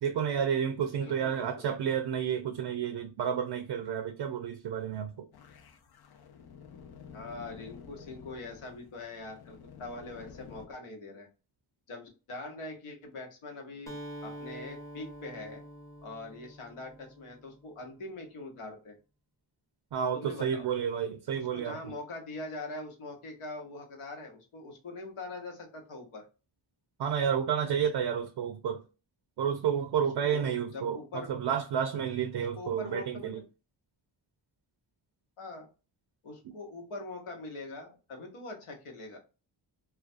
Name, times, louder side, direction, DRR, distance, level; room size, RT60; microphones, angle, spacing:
voice 1, 0.0-5.3 19.9-21.8 27.0-28.8 29.4-31.0 31.3-33.4, right 8 dB, 55° right, 0.5 m, -30 dB
voice 2, 1.0-1.7 7.1-11.3 11.9-13.9 14.2-15.6 16.0-19.0 20.1-20.7 21.3-26.2 30.0-31.3 31.9-32.1 32.3-33.4 35.4-35.7 36.2-39.2, left 2 dB, 85° left, 0.9 m, -43 dB
sound 1, 5.3-10.7, left 6 dB, 50° left, 0.5 m, -51 dB
Acoustic guitar, 13.9-17.7, right 1 dB, 5° left, 0.8 m, -46 dB
2.4 x 2.2 x 2.5 m
cardioid pair, 45°, 50 cm